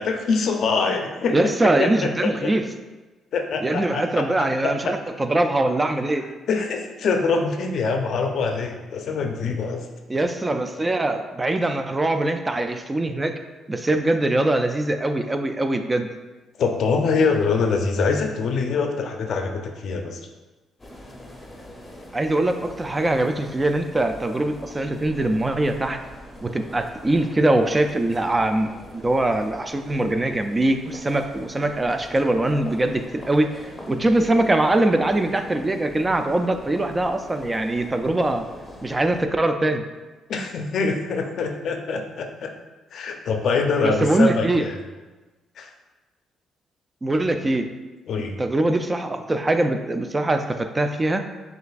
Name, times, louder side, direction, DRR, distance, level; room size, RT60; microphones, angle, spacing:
voice 1, 0.0-1.4 1.8-1.9 2.2-2.5 3.3-5.0 6.5-9.9 16.6-20.2 40.3-42.5 42.9-44.8 45.6-45.7 48.1-48.3, left 4 dB, 65° left, 4 dB, 0.5 m, -24 dB
voice 2, 1.3-2.7 3.6-6.2 10.1-13.3 13.7-16.1 22.1-26.0 26.4-38.5 38.8-39.8 43.8-44.7 47.0-47.7 48.4-51.3, right 1 dB, 20° right, 6 dB, 0.3 m, -22 dB
sound 1, 20.8-39.3, left 1 dB, 20° left, 0.7 m, -43 dB
6.4 x 2.5 x 2.4 m, 1.2 s
cardioid pair, 90°, 0 cm